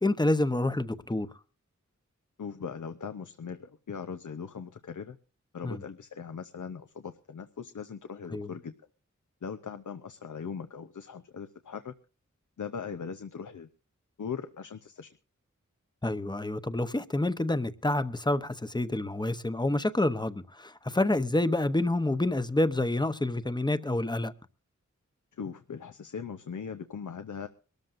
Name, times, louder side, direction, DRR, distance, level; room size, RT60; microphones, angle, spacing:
voice 1, 0.0-1.3 5.6-5.8 8.3-8.5 16.0-24.3, left 1 dB, 15° left, 0.8 m, -28 dB
voice 2, 2.4-5.2 5.5-8.7 9.4-11.9 12.6-13.7 14.2-15.1 25.3-27.5, left 6 dB, 85° left, 0.7 m, -40 dB
23.5 x 13.5 x 2.6 m
wide cardioid pair, 75°, 30 cm